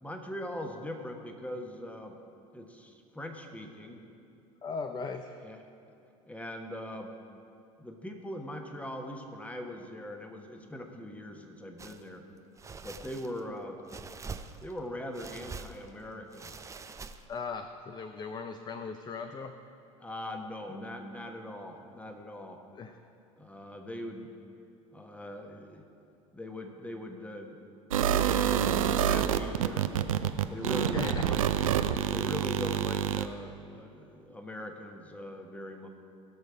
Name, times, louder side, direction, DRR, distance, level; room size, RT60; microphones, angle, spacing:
voice 1, 0.0-2.2 2.5-4.0 5.4-5.6 6.2-7.1 7.8-12.3 12.8-13.8 14.6-16.5 20.0-22.6 23.4-24.3 24.9-25.9 26.3-27.6 28.0-30.1 30.5-31.5 32.1-35.9, left 1 dB, 10° left, 4 dB, 1.4 m, -41 dB
voice 2, 4.6-5.4 17.3-19.5 22.7-23.0 30.7-31.3 32.6-32.7, left 5 dB, 25° left, 7 dB, 0.6 m, -38 dB
sound 1, 11.8-12.0 12.6-13.4 13.9-14.8 15.1-15.9 16.3-17.4, right 5 dB, 15° right, 0.6 m, -44 dB
sound 2, 27.9-33.3, right 9 dB, 80° right, 0.5 m, -27 dB
17.5 x 6.5 x 5.0 m, 2.6 s
hypercardioid pair, 75°, 17 cm